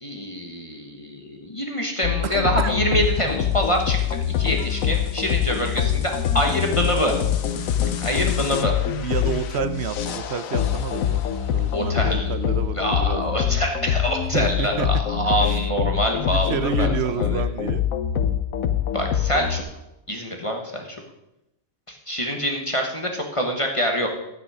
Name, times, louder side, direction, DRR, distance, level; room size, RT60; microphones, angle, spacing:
voice 1, 0.0-4.0 4.4-7.1 8.0-8.7 11.7-12.3 12.7-17.4 18.9-19.6 20.1-20.8 21.9-24.1, equal, 25° left, 2 dB, 1.4 m, -25 dB
sound 1, 2.0-19.6, left 9 dB, 80° left, 1.2 m, -24 dB
voice 2, 2.2-2.7 7.7-8.0 8.9-13.4 14.3-14.9 15.4-15.6 16.3-17.8, right 7 dB, 60° right, 12 dB, 0.9 m, -29 dB
12.0 x 9.0 x 4.9 m, 0.89 s
omnidirectional pair, 1.4 m